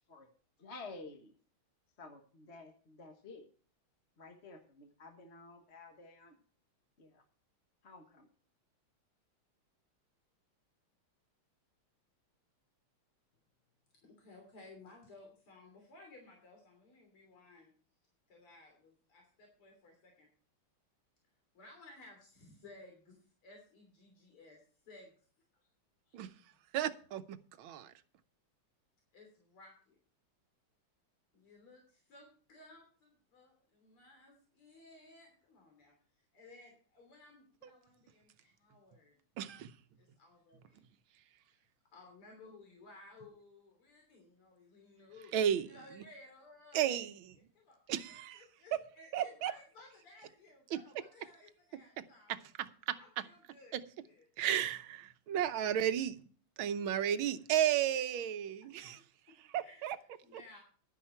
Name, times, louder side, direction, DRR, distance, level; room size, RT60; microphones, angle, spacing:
voice 1, 0.6-1.3 2.0-3.5 4.2-6.4 7.0-7.2 7.8-8.3, left 3 dB, 35° left, 1.3 m, -52 dB
voice 2, 14.0-17.7 18.3-20.3 21.5-25.1 25.5-25.6 29.1-30.0 31.3-39.2 40.2-40.8 41.5-41.6 41.9-45.4 45.7-46.9 47.5-52.3 52.9-54.3 58.6-58.7 59.6-60.6, left 2 dB, 90° left, 4.2 m, -58 dB
voice 3, 26.7-27.9 39.4-39.5 45.3-45.7 46.7-47.1 47.9-48.4 49.1-49.5 52.3-53.0 53.7-53.8 54.4-56.1 56.6-59.0 59.5-60.0 60.3-60.4, right 10 dB, 75° right, 1.6 m, -33 dB
11.0 x 10.0 x 4.4 m
omnidirectional pair, 2.3 m